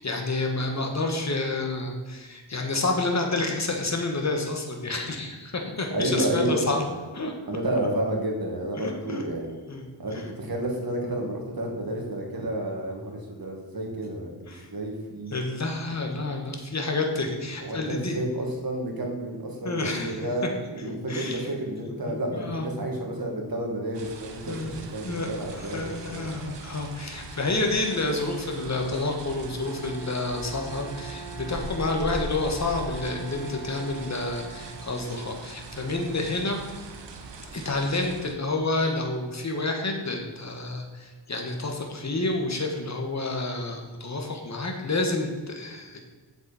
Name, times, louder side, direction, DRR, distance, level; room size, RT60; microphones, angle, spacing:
voice 1, 0.0-6.8 7.1-7.3 8.8-9.2 9.7-9.8 10.1-10.2 14.5-14.7 15.3-18.2 19.6-20.5 20.8-21.4 22.0-22.7 24.5-36.6 37.5-46.0, left 2 dB, 40° left, 2 dB, 1.5 m, -29 dB
voice 2, 5.9-7.0 7.4-9.5 10.0-15.3 17.6-26.3, right 1 dB, 55° right, 0 dB, 2.0 m, -31 dB
sound 1, 23.9-38.3, right 3 dB, 75° right, 1.0 m, -41 dB
Bowed string instrument, 29.4-35.6, right 4 dB, 20° left, 1.5 m, -43 dB
8.0 x 7.0 x 4.3 m, 1.3 s
wide cardioid pair, 90°, 43 cm